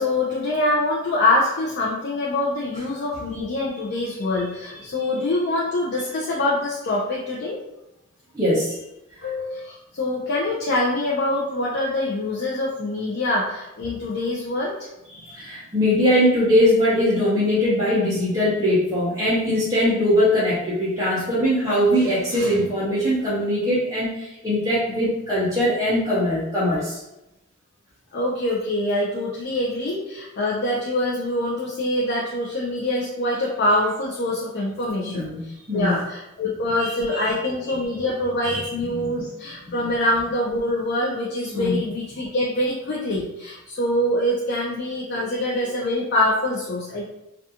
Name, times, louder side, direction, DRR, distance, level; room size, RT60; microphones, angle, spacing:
voice 1, 0.0-7.6 9.2-14.7 28.1-47.1, left 1 dB, 50° left, -4 dB, 0.4 m, -24 dB
voice 2, 8.3-8.8 9.2-9.3 15.1-27.0 35.1-35.9 36.8-37.3 37.7-37.8 38.4-38.6 39.0-39.1 41.5-41.7, left 1 dB, 15° right, -10 dB, 0.6 m, -21 dB
2.4 x 2.3 x 2.7 m, 0.91 s
head